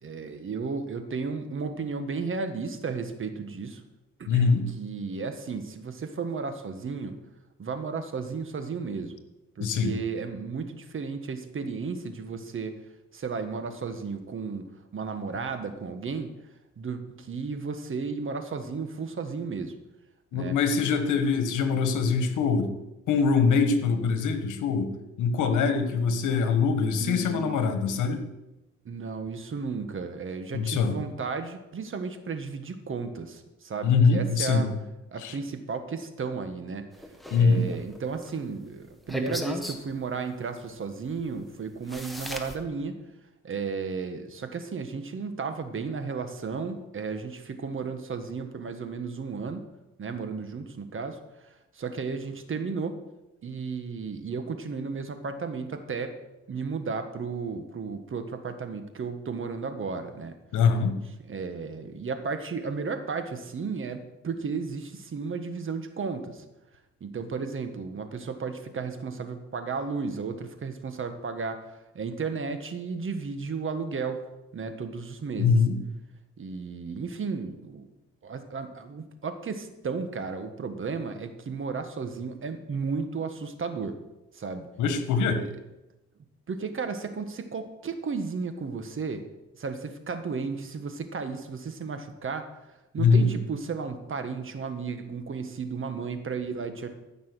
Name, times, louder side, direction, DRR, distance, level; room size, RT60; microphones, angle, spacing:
voice 1, 0.0-3.8 4.2-7.2 7.6-9.2 9.6-12.8 13.1-14.7 14.9-16.3 16.8-19.7 20.3-20.6 27.0-27.7 28.8-34.7 35.1-36.9 37.3-43.0 43.4-49.6 50.0-51.2 51.5-53.0 53.4-56.2 56.5-60.3 61.2-66.4 67.0-74.2 74.5-75.6 76.4-77.9 78.2-84.0 84.3-84.7 85.4-85.5 86.5-89.2 89.6-92.5 92.9-96.9, right 5 dB, 40° right, 8 dB, 1.5 m, -34 dB
voice 2, 4.3-4.6 9.6-10.0 20.3-22.7 23.1-24.9 25.2-28.2 30.5-31.0 33.8-34.7 35.2-35.3 37.3-37.7 60.5-61.0 75.4-75.8 84.8-85.4 93.0-93.3, left 5 dB, 80° left, 8 dB, 1.5 m, -23 dB
sound 1, 36.9-38.3 39.1-39.8 41.3-41.4 41.9-42.6, equal, ahead, 1.5 m, -35 dB
14.5 x 6.1 x 6.3 m, 0.98 s
cardioid pair, 90°, 30 cm